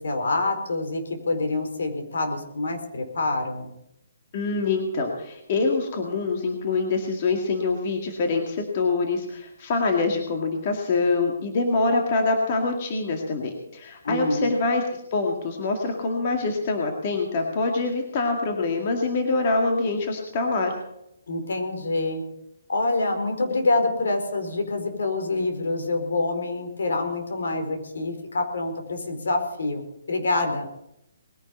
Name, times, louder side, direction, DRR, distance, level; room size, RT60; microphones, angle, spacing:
voice 1, 0.0-3.7 14.0-14.5 21.3-22.2 22.7-29.8 30.1-30.7, left 2 dB, 70° left, 5 dB, 4.4 m, -26 dB
voice 2, 4.3-14.8 15.1-20.7, left 3 dB, 30° left, 2 dB, 2.1 m, -25 dB
20.5 x 10.5 x 5.4 m, 0.79 s
hypercardioid pair, 175°, 0 cm